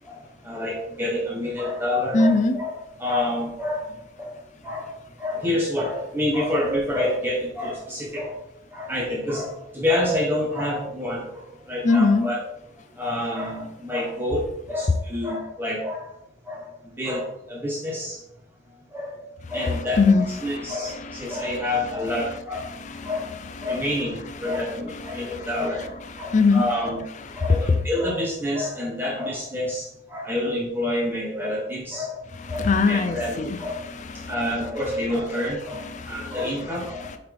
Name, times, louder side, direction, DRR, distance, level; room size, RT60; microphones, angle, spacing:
voice 1, 0.4-2.7 3.0-3.9 4.2-4.3 4.6-4.9 5.2-8.4 8.7-12.4 13.0-16.1 16.5-16.7 17.0-18.2 18.9-19.2 19.5-22.7 23.0-23.3 23.6-25.9 26.2-27.0 27.4-33.8 34.3-37.1, left 1 dB, 10° right, -3 dB, 0.9 m, -28 dB
voice 2, 2.1-2.6 11.8-12.3 20.0-21.6 22.6-23.1 24.4-25.5 26.2-26.7 27.2-27.7 32.5-34.5 35.8-36.5 37.0-37.2, left 3 dB, 35° left, 8 dB, 0.4 m, -23 dB
7.7 x 3.9 x 3.5 m, 0.84 s
head